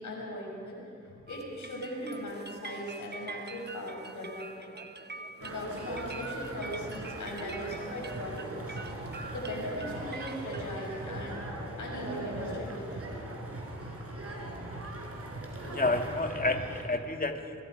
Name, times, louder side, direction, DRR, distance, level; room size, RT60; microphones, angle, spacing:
voice 1, 0.0-4.7 5.4-8.8 9.3-11.5 11.8-13.1, left 1 dB, 85° left, -1 dB, 6.1 m, -39 dB
sound 1, 1.3-10.7, right 4 dB, 35° right, 1.0 m, -45 dB
sound 2, 5.4-16.8, right 1 dB, 50° right, 4.5 m, -39 dB
voice 2, 15.6-17.6, left 2 dB, 30° left, 5 dB, 2.1 m, -30 dB
26.0 x 22.0 x 5.3 m, 2.6 s
cardioid pair, 60°, 29 cm